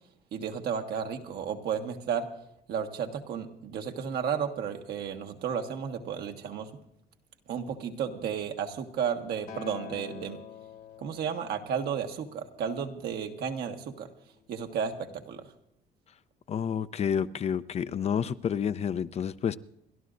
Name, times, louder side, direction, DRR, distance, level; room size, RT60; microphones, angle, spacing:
voice 1, 0.3-2.3 2.7-6.7 7.5-10.4 11.0-14.1 14.5-15.4, right 7 dB, 70° right, 5 dB, 1.4 m, -33 dB
Acoustic guitar, 9.5-13.8 14.6-14.7, left 9 dB, 60° left, 1.5 m, -47 dB
voice 2, 16.5-19.6, left 8 dB, 40° left, 13 dB, 0.5 m, -29 dB
30.0 x 12.0 x 2.5 m, 0.79 s
cardioid pair, 110°, 17 cm